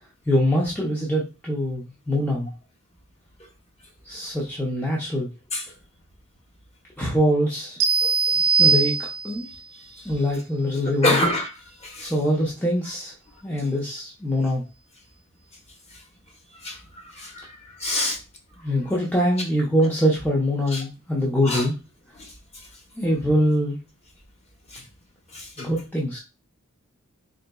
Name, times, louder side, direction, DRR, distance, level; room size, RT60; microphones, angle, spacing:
voice 1, 0.3-2.5 4.0-5.3 7.0-7.8 8.6-9.5 10.0-11.2 12.0-13.1 13.4-14.6 18.6-21.7 23.0-23.8 25.6-26.2, equal, 10° left, -5 dB, 0.6 m, -23 dB
sound 1, 7.8-9.5, right 5 dB, 55° right, 0.4 m, -20 dB
voice 2, 8.0-8.4 11.0-11.5 11.8-12.1 16.6-16.8 17.2-17.4 17.8-18.2 20.7-20.8 21.4-21.6 22.2-22.3 25.3-25.7, left 1 dB, 30° left, 1 dB, 0.9 m, -25 dB
3.8 x 3.6 x 2.3 m, 0.30 s
head